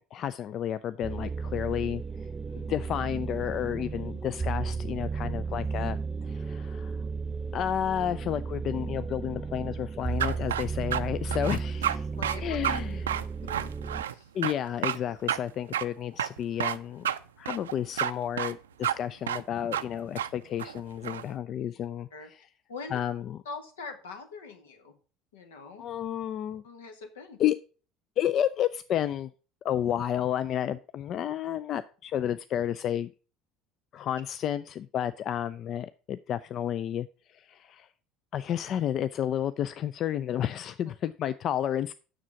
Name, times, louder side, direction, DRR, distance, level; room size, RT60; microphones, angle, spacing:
voice 1, 0.0-2.0 2.7-6.0 6.2-7.0 7.5-12.1 12.4-13.0 14.3-17.1 17.4-22.4 22.9-23.4 25.8-26.6 27.4-27.6 28.2-29.3 29.6-33.1 33.9-37.1 37.3-37.9 38.3-41.9, left 10 dB, 50° left, 14 dB, 0.4 m, -31 dB
sound 1, 1.0-14.0, right 5 dB, 25° right, 0.4 m, -34 dB
sound 2, 10.2-11.0 11.3-12.0 12.2-12.4 12.6-12.8 13.1-14.1 14.4-14.5 14.8-15.0 15.3-15.4 15.7-15.8 16.2-16.8 17.0-17.2 17.5-18.1 18.4-18.5 18.8-18.9 19.3-19.4 19.7-19.8 20.2-20.3 20.6-21.2, right 10 dB, 80° right, 0.4 m, -29 dB
voice 2, 13.4-13.7 14.0-14.3 22.1-22.3 22.7-23.0 23.4-25.0 25.3-25.8 26.6-27.4, left 4 dB, 80° left, 7 dB, 1.4 m, -43 dB
7.3 x 6.4 x 5.8 m, 0.37 s
hypercardioid pair, 65°, 0 cm